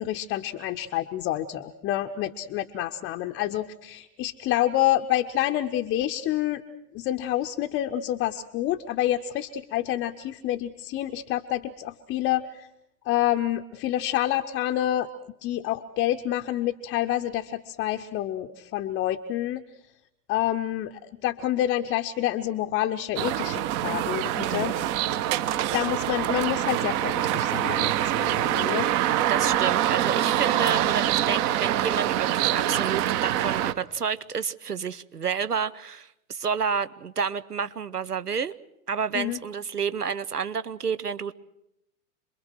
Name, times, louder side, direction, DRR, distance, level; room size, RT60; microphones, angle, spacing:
voice 1, 0.0-6.6 6.9-12.7 13.1-15.1 15.4-19.6 20.3-24.7 25.7-29.1 39.1-39.4, left 13 dB, 25° left, 6 dB, 0.8 m, -28 dB
sound 1, 23.2-33.7, right 12 dB, 35° right, 1.0 m, -25 dB
voice 2, 24.3-24.7 29.3-38.5 38.9-41.3, right 6 dB, 85° right, 14 dB, 0.9 m, -30 dB
27.0 x 22.0 x 6.2 m, 0.84 s
figure-of-eight pair, 95°, 45 cm